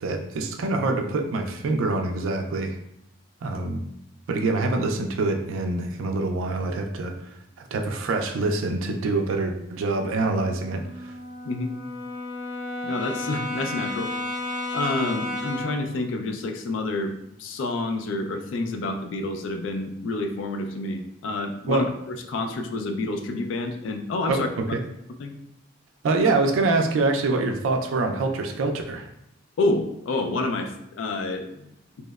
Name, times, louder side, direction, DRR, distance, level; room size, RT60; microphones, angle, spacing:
voice 1, 0.0-2.7 3.4-3.8 4.3-7.1 7.7-11.1 21.6-21.9 24.3-24.8 26.0-29.1, right 3 dB, 85° right, 4 dB, 0.3 m, -25 dB
Brass instrument, 10.4-15.9, left 1 dB, 20° right, 0.5 m, -32 dB
voice 2, 12.8-14.1 14.7-17.1 17.4-24.5 25.2-25.3 29.6-31.7, left 2 dB, 70° left, 6 dB, 0.3 m, -28 dB
2.9 x 2.0 x 2.2 m, 0.79 s
head